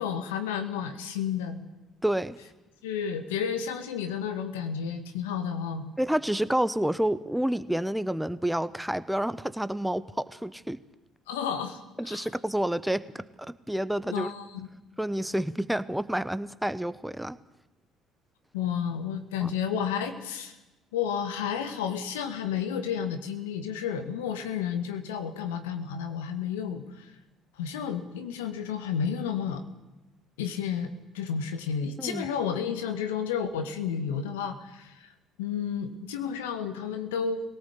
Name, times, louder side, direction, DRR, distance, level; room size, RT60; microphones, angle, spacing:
voice 1, 0.0-1.6 2.8-5.8 11.3-12.3 14.1-14.7 18.5-20.6 20.9-27.1 27.6-29.6 30.4-30.9 31.1-35.1 35.4-37.4, left 7 dB, 80° left, 8 dB, 2.0 m, -31 dB
voice 2, 2.0-2.4 6.0-10.8 12.0-14.3 15.0-17.4 19.4-19.5 32.0-32.3, right 1 dB, 5° right, 15 dB, 1.0 m, -29 dB
22.0 x 18.0 x 8.5 m, 1.1 s
hypercardioid pair, 60°, 0 cm